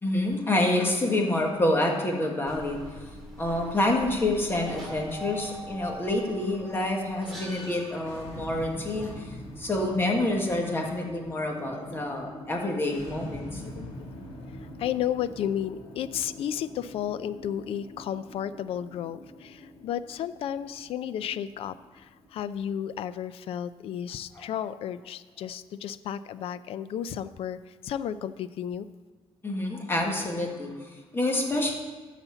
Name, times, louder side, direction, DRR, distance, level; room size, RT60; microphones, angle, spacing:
voice 1, 0.0-2.8 3.4-13.6 24.4-24.5 29.4-31.7, left 1 dB, 20° left, 1 dB, 1.7 m, -27 dB
sound 1, 2.5-9.9, right 1 dB, ahead, 2.5 m, -43 dB
sound 2, 8.0-22.9, equal, 90° left, 2.1 m, -45 dB
voice 2, 13.6-14.1 14.6-28.9, left 10 dB, 70° left, 15 dB, 0.4 m, -33 dB
12.5 x 4.2 x 7.0 m, 1.3 s
cardioid pair, 125°, 10 cm